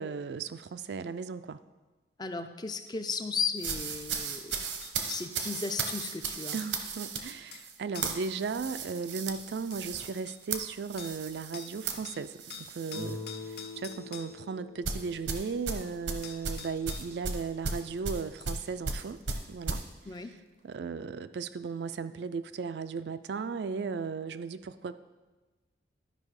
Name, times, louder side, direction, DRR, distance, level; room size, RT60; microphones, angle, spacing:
voice 1, 0.0-1.6 6.5-12.4 12.7-19.2 19.5-19.8 20.6-24.9, right 5 dB, 65° right, 12 dB, 0.4 m, -36 dB
voice 2, 2.2-4.6 5.1-6.6 20.1-20.3, left 5 dB, 20° left, 8 dB, 0.4 m, -35 dB
sound 1, 2.9-3.0 3.7-3.8 4.5-5.3 5.9-7.7 7.9-8.3 9.3-9.4 9.7-10.4 11.0-11.2 11.5-11.8 12.0-14.3 15.9-16.0 16.2-17.2 18.4-18.5, left 7 dB, 60° left, 0.9 m, -47 dB
sound 2, 3.6-13.2 13.5-13.8 14.8-19.8, right 5 dB, 85° right, 0.9 m, -36 dB
Guitar, 12.9-17.7, left 3 dB, 90° left, 1.8 m, -45 dB
11.5 x 5.4 x 4.8 m, 1.2 s
head